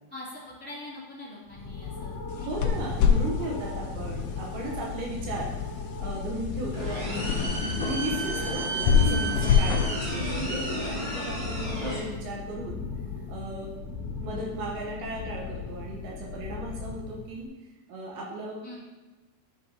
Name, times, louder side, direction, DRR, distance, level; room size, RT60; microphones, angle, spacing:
voice 1, 0.1-2.7 18.6-18.8, left 1 dB, 5° left, -10 dB, 1.3 m, -43 dB
sound 1, 1.5-17.5, left 5 dB, 45° left, 1.5 m, -37 dB
sound 2, 2.3-11.7, left 7 dB, 80° left, 1.9 m, -28 dB
voice 2, 2.4-5.5 6.0-7.4 7.8-12.8 13.3-13.7 14.2-17.5 17.9-18.6, right 2 dB, 85° right, -2 dB, 2.8 m, -36 dB
sound 3, 6.7-12.0, right 1 dB, 30° right, 1.0 m, -31 dB
10.0 x 4.9 x 2.7 m, 1.2 s
omnidirectional pair, 4.2 m